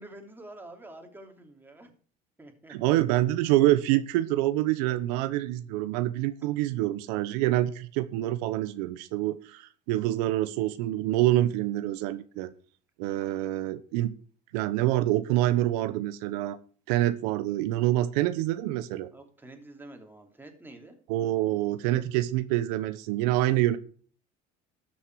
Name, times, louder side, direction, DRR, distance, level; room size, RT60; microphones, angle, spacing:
voice 1, 0.0-1.9 2.4-3.0 13.2-13.3 19.1-21.0, right 1 dB, 10° right, 4 dB, 3.0 m, -48 dB
voice 2, 2.7-12.5 13.0-14.1 14.5-16.6 16.9-19.1 21.1-23.8, right 15 dB, 85° right, 12 dB, 0.9 m, -26 dB
13.0 x 7.3 x 4.8 m, 0.43 s
supercardioid pair, 110°, 20 cm